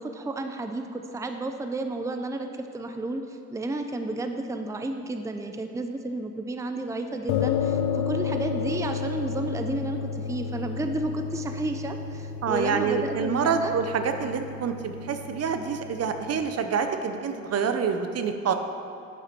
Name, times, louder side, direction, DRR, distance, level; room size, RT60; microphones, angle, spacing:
voice 1, 0.0-13.7, right 2 dB, 10° right, 6 dB, 0.5 m, -32 dB
sound 1, 7.3-16.4, left 6 dB, 90° left, 0.6 m, -32 dB
voice 2, 12.4-18.5, right 6 dB, 55° right, 7 dB, 0.7 m, -27 dB
8.7 x 7.7 x 4.5 m, 2.7 s
cardioid pair, 90°, 30 cm